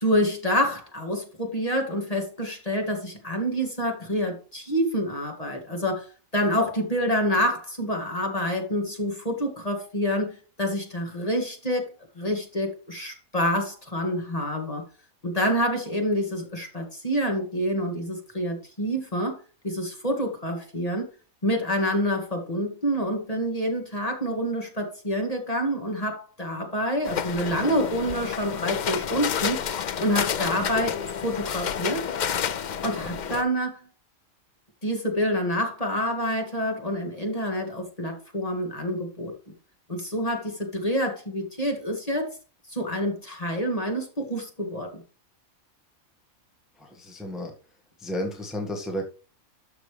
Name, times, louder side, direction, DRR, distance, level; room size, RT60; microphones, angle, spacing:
voice 1, 0.0-6.1 6.3-14.8 15.2-21.1 21.4-29.6 30.0-32.1 32.8-33.8 34.8-39.3 39.9-42.3 42.7-45.0, equal, 25° left, 1 dB, 2.1 m, -27 dB
sound 1, 27.0-33.4, left 8 dB, 80° left, 0.4 m, -29 dB
voice 2, 46.7-47.6 48.0-49.0, equal, ahead, 1 dB, 1.5 m, -32 dB
12.5 x 6.0 x 3.3 m, 0.35 s
omnidirectional pair, 1.5 m